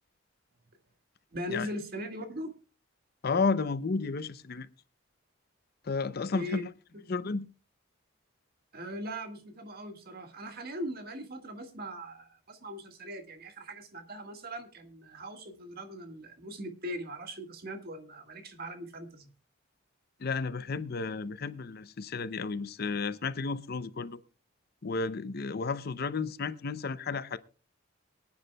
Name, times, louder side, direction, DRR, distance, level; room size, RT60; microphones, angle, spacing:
voice 1, 1.3-2.5 6.3-6.7 8.7-19.3, equal, 50° right, 1.7 m, -40 dB
voice 2, 3.2-4.7 5.8-6.7 7.1-7.5 20.2-24.2 24.8-27.4, left 4 dB, 50° left, 0.6 m, -32 dB
24.0 x 9.6 x 2.2 m
head